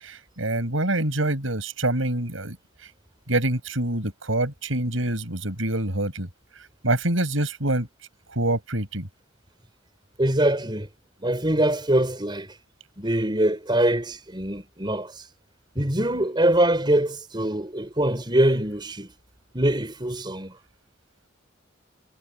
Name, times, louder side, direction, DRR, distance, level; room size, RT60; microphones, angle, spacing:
voice 1, 0.0-2.6 3.3-6.3 6.8-7.9 8.3-9.1, right 1 dB, 75° right, 6.5 m, -25 dB
voice 2, 10.2-10.9 11.2-12.5 13.0-15.2 15.7-19.1 19.5-20.5, right 1 dB, 25° right, 5.0 m, -23 dB
head